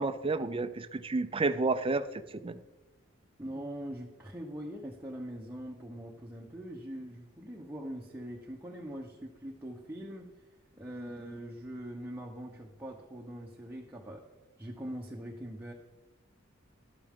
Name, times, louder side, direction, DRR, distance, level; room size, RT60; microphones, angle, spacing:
voice 1, 0.0-2.6, right 3 dB, 25° right, 11 dB, 0.5 m, -31 dB
voice 2, 3.4-10.3 10.8-14.2 14.6-15.7, equal, 10° right, -1 dB, 1.0 m, -42 dB
12.5 x 12.0 x 3.7 m, 1.1 s
head